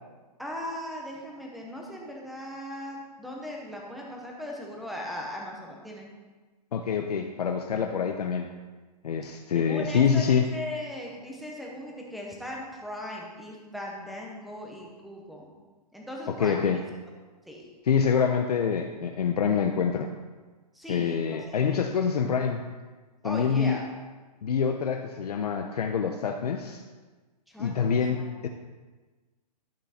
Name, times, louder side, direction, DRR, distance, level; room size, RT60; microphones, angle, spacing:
voice 1, 0.4-6.1 9.5-15.5 15.9-16.6 17.5-17.7 20.7-21.2 21.6-21.8 23.2-23.8 27.5-28.3, left 1 dB, ahead, -2 dB, 0.8 m, -38 dB
voice 2, 6.7-8.5 9.0-10.5 16.3-16.8 17.8-20.1 20.9-22.6 23.2-23.8 24.4-26.8 27.6-28.5, left 6 dB, 65° left, 4 dB, 0.8 m, -26 dB
12.0 x 5.7 x 4.2 m, 1.3 s
hypercardioid pair, 170°, 21 cm